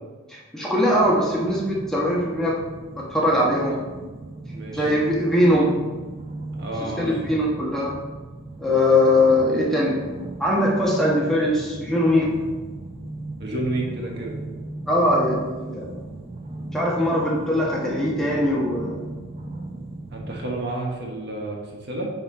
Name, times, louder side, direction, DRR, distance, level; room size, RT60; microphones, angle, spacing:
voice 1, 0.3-2.6 3.0-3.8 4.7-5.7 7.0-7.9 8.6-10.0 10.4-12.3 14.9-15.9 16.7-19.0, left 1 dB, ahead, -5 dB, 1.2 m, -21 dB
sound 1, 0.9-20.5, right 2 dB, 30° right, 0.5 m, -37 dB
voice 2, 4.5-4.9 6.6-7.1 13.4-14.4 20.1-22.1, right 2 dB, 50° right, -1 dB, 1.3 m, -30 dB
8.1 x 4.3 x 4.1 m, 1.3 s
head